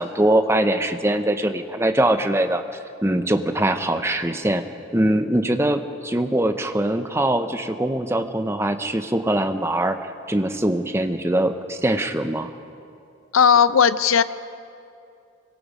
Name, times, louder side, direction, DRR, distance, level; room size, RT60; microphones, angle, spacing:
voice 1, 0.0-2.6 3.0-4.6 4.9-12.5, right 1 dB, 15° right, 8 dB, 0.7 m, -22 dB
voice 2, 13.3-14.2, left 7 dB, 90° left, 14 dB, 0.6 m, -16 dB
25.0 x 22.5 x 5.0 m, 2.5 s
head